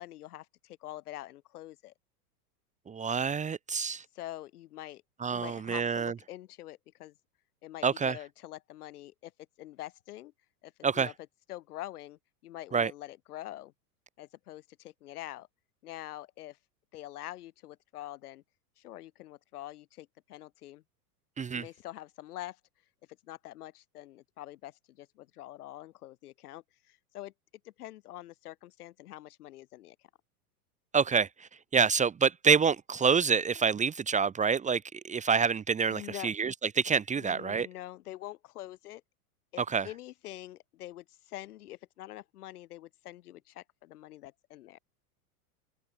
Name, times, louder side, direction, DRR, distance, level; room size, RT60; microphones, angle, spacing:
voice 1, 0.0-1.9 4.1-5.0 5.3-7.1 7.6-9.3 9.6-10.3 10.6-11.1 11.5-13.7 14.2-15.5 15.8-16.6 16.9-18.4 18.8-20.8 21.5-22.6 23.2-27.3 27.6-30.0 35.9-36.3 37.2-39.0 39.5-44.8, left 15 dB, 70° left, 7.9 m, -45 dB
voice 2, 2.9-4.0 5.2-6.1 7.8-8.2 10.8-11.1 12.7-12.9 21.4-21.6 30.9-37.7 39.6-39.9, right 6 dB, 15° right, 1.4 m, -27 dB
open air
hypercardioid pair, 125°, 47 cm